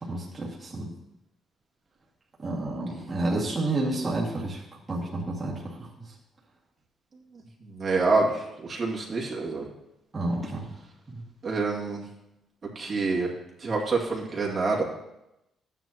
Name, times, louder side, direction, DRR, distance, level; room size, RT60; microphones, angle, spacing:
voice 1, 0.0-0.9 2.4-4.6 4.9-5.7 10.1-10.7 11.1-11.2, right 2 dB, 30° right, -5 dB, 2.1 m, -30 dB
voice 2, 7.6-9.6 11.4-12.0 12.8-13.3 13.6-14.8, right 3 dB, 45° right, -3 dB, 2.2 m, -27 dB
13.0 x 9.4 x 3.0 m, 0.89 s
cardioid pair, 90°, 0 cm